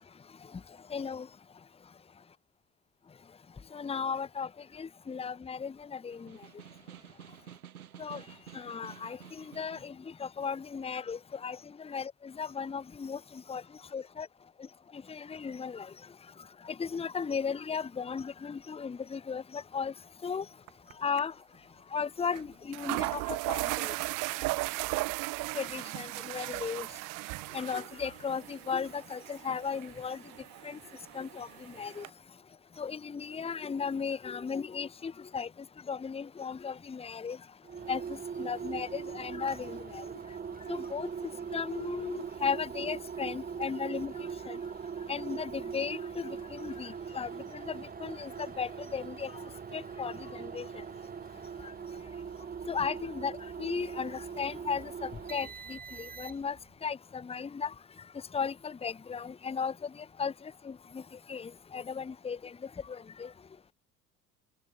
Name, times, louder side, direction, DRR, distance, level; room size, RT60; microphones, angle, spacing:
voice 1, 0.9-1.3 3.7-4.5 4.7-6.3 8.0-8.2 8.5-9.9 10.2-13.6 13.9-14.3 14.9-15.9 16.6-19.9 20.2-20.4 21.0-21.3 21.9-23.9 25.5-26.9 27.5-30.2 30.6-30.8 31.1-31.5 31.8-32.0 32.8-35.5 35.9-37.4 37.9-40.1 40.7-41.1 41.5-44.1 44.5-44.6 45.1-49.3 49.7-50.7 52.7-53.3 53.6-56.6 56.8-57.7 58.3-59.7 60.2-60.3 60.6-61.0 61.3-62.5 62.9-63.3, left 6 dB, 15° left, 0.9 m, -36 dB
Snare drum, 6.1-10.0, right 10 dB, 80° right, 2.7 m, -51 dB
sound 1, 20.7-20.9 21.2-21.3 22.3-22.4 22.7-32.1, right 25 dB, 45° right, 0.7 m, -36 dB
sound 2, 37.6-56.6, right 6 dB, 20° right, 1.0 m, -41 dB
open air
figure-of-eight pair, 60°, 43 cm